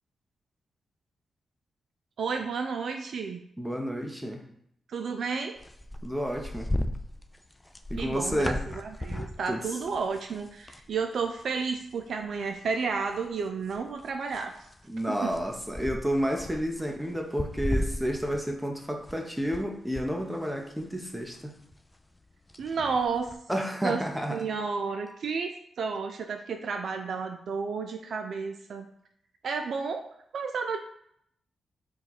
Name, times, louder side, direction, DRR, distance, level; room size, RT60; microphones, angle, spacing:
voice 1, 2.2-3.4 4.9-5.6 8.0-14.7 15.1-15.3 22.6-23.4 23.8-28.9 29.4-30.0 30.3-30.8, right 5 dB, 70° right, 5 dB, 0.3 m, -32 dB
voice 2, 3.6-4.4 6.0-6.7 7.9-8.6 9.5-9.7 14.9-21.5 23.5-24.4, equal, 5° right, 2 dB, 0.8 m, -31 dB
sound 1, 5.6-10.9 11.2-11.4 11.8-12.6 13.1-19.6 19.9-23.4, left 1 dB, 20° left, 0.4 m, -36 dB
4.2 x 2.4 x 4.1 m, 0.72 s
supercardioid pair, 55°, 0 cm